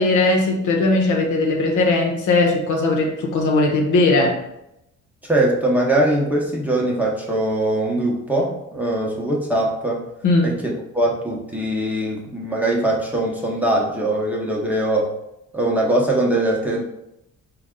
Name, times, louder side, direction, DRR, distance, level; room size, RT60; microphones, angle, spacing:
voice 1, 0.0-4.4 10.2-10.5, left 2 dB, 75° left, 2 dB, 0.8 m, -18 dB
voice 2, 5.2-10.0 10.4-15.1 15.5-16.8, right 1 dB, 5° right, -3 dB, 0.8 m, -21 dB
4.0 x 2.3 x 3.7 m, 0.85 s
cardioid pair, 90°, 30 cm